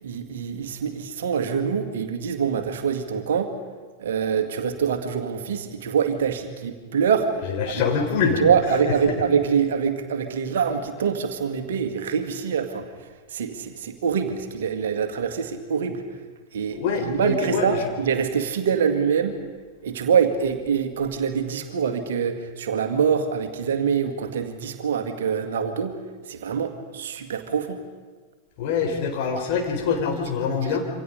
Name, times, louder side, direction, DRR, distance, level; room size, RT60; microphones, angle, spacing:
voice 1, 0.0-3.5 4.0-7.3 7.7-7.8 8.4-12.9 13.3-16.0 16.5-19.4 19.8-26.0 26.3-27.8, right 7 dB, 60° right, 7 dB, 2.1 m, -25 dB
voice 2, 7.4-8.4 8.8-8.9 16.7-17.7 28.6-30.9, left 5 dB, 45° left, 3 dB, 4.3 m, -24 dB
27.0 x 25.5 x 5.3 m, 1.4 s
figure-of-eight pair, 90°, 0 cm